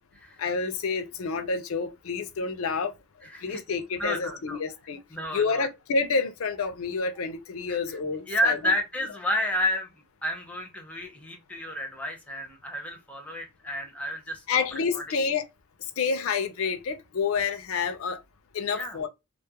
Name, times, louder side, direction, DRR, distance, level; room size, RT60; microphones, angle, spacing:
voice 1, 0.4-2.9 3.4-5.0 5.3-8.6 14.5-15.5 16.0-18.2 18.5-19.1, left 5 dB, 75° left, 0.4 m, -28 dB
voice 2, 3.2-4.6 5.1-5.7 7.7-8.0 8.3-9.9 10.2-14.6 14.9-15.0 18.7-19.0, left 1 dB, 5° left, 0.5 m, -31 dB
2.3 x 2.1 x 2.7 m
head